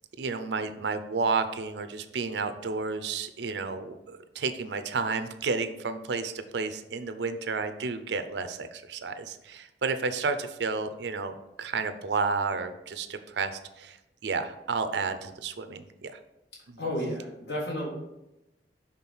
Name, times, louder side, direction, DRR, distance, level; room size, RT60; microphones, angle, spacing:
voice 1, 0.2-14.0 14.2-16.2 16.7-16.8, right 4 dB, 75° right, 9 dB, 0.5 m, -31 dB
voice 2, 16.8-17.9, equal, 70° left, -3 dB, 1.6 m, -32 dB
6.0 x 3.7 x 5.5 m, 0.90 s
head